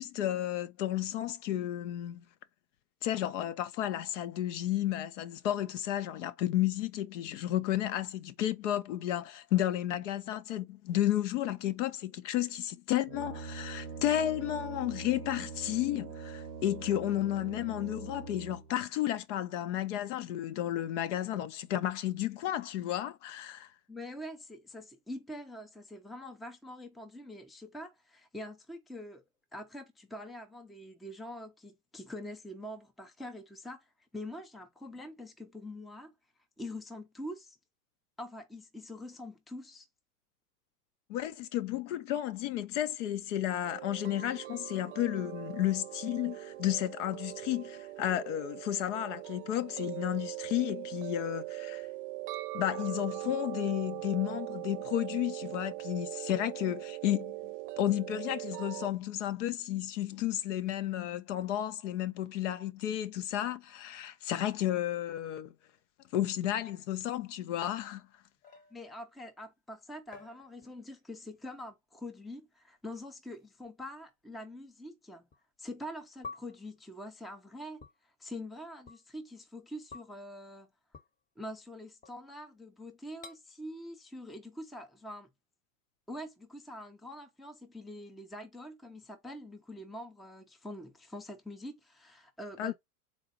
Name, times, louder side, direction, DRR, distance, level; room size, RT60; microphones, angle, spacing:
voice 1, 0.0-2.2 3.0-23.7 41.1-51.9 52.5-57.4 57.8-65.5 66.1-68.0 92.6-92.7, left 12 dB, 50° left, 0.6 m, -32 dB
Brass instrument, 13.1-18.8, right 5 dB, 90° right, 0.7 m, -43 dB
voice 2, 23.9-29.2 29.5-33.9 34.1-36.1 36.6-37.6 38.2-39.9 68.7-75.2 75.6-77.8 78.2-80.7 81.4-85.3 86.1-92.7, left 1 dB, ahead, 0.5 m, -45 dB
sound 1, 43.6-58.9, right 19 dB, 50° right, 0.7 m, -41 dB
sound 2, 67.6-69.1 70.1-71.0 71.3-71.7 72.7-72.8 73.6-73.7 75.3-75.4 76.2-76.7 77.8-78.0 78.9-79.0 79.9-80.2 80.9-81.1 82.0-82.5 83.2-83.4, left 4 dB, 15° left, 0.9 m, -50 dB
4.1 x 2.2 x 4.2 m
hypercardioid pair, 95°, 46 cm